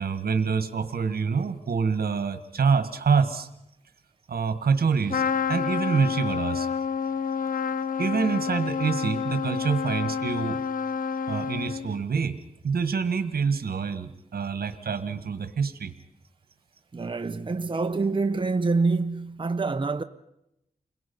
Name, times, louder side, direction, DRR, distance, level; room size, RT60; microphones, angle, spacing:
voice 1, 0.0-3.5 4.3-5.2 5.5-6.7 8.0-10.6 11.3-12.4 12.6-15.9, right 5 dB, 80° right, 1.5 m, -26 dB
Trumpet, 5.1-12.0, left 6 dB, 65° left, 0.8 m, -29 dB
voice 2, 16.9-20.0, right 3 dB, 35° right, 0.9 m, -26 dB
29.0 x 21.5 x 5.4 m
wide cardioid pair, 90°, 16 cm